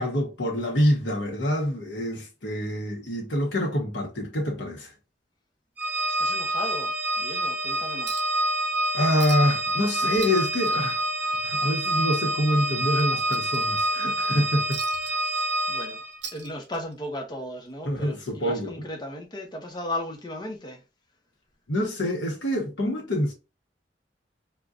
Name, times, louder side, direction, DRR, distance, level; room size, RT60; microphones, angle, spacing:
voice 1, 0.0-4.9 8.9-14.8 17.8-18.7 21.7-23.3, equal, 80° left, 0.9 m, -26 dB
Organ, 5.8-16.2, right 1 dB, 10° right, 0.6 m, -27 dB
voice 2, 6.1-8.1 15.3-16.0 16.3-18.1 18.4-20.8, left 1 dB, 25° left, 0.7 m, -36 dB
Chink clink, 8.1-8.4 8.7-8.8 9.2-9.7 10.0-11.7 12.0-12.2 12.6-14.0 14.7-15.8 16.1-17.0 18.1-18.2, right 6 dB, 70° right, 0.7 m, -41 dB
3.7 x 2.2 x 2.4 m
head